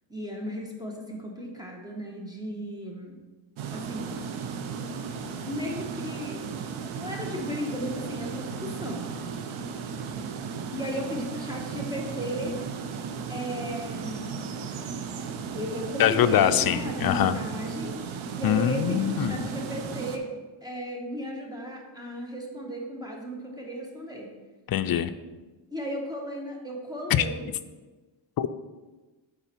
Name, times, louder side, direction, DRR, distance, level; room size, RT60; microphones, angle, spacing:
voice 1, 0.1-3.2 3.7-4.1 5.4-6.4 6.8-9.1 10.7-12.5 13.3-14.3 15.5-17.9 18.3-20.3 20.6-24.3 25.7-27.5, equal, 10° right, -1 dB, 1.3 m, -35 dB
sound 1, 3.6-20.2, right 6 dB, 80° right, 0.8 m, -35 dB
voice 2, 16.0-17.4 18.4-19.4 24.7-25.1 27.1-27.2 28.4-28.5, left 10 dB, 50° left, 11 dB, 0.5 m, -23 dB
8.7 x 4.1 x 4.5 m, 1.2 s
cardioid pair, 95°, 48 cm